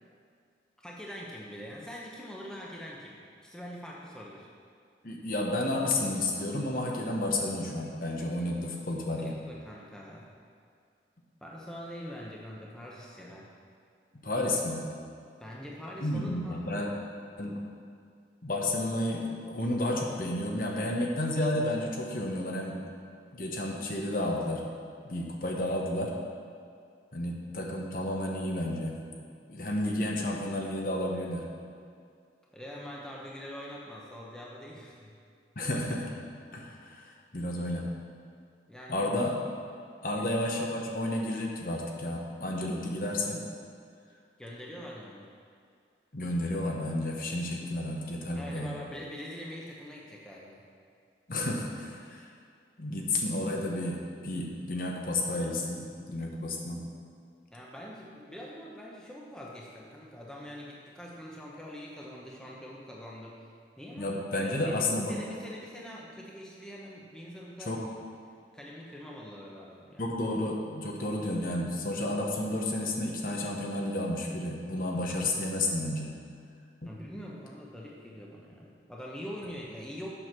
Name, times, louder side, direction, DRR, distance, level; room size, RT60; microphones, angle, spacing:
voice 1, 0.8-4.5 9.2-10.3 11.4-13.5 15.4-17.1 32.5-35.1 38.7-39.1 40.1-40.3 44.4-45.2 48.3-50.6 57.5-63.4 63.8-64.8 65.1-67.8 68.5-70.1 76.8-80.1, equal, 5° left, -4 dB, 0.9 m, -44 dB
voice 2, 5.0-9.4 14.2-14.9 16.0-16.9 17.4-17.6 18.4-22.8 23.3-24.6 25.0-26.1 27.1-29.0 29.5-31.5 35.6-36.1 36.5-37.9 38.9-39.4 40.0-43.4 46.1-48.7 51.3-52.3 52.8-56.8 64.0-65.1 67.6-67.8 70.0-76.1 76.8-76.9, left 1 dB, 50° left, -1 dB, 1.0 m, -31 dB
7.9 x 6.3 x 6.1 m, 2.3 s
head